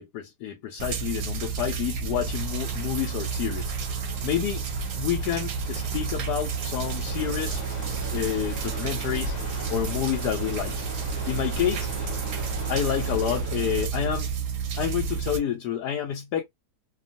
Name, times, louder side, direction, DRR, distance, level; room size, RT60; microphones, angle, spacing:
voice 1, 0.0-3.7 4.2-4.6 4.9-7.6 8.1-9.4 9.7-10.8 11.3-11.9 12.7-14.3 14.8-16.4, left 10 dB, 80° left, 1.2 m, -29 dB
sound 1, 0.8-15.4, right 6 dB, 65° right, 0.9 m, -30 dB
Crow, 2.0-13.5, left 2 dB, 50° left, 0.5 m, -43 dB
sound 2, 7.1-13.9, right 2 dB, 20° right, 0.4 m, -40 dB
2.9 x 2.3 x 2.5 m
omnidirectional pair, 1.7 m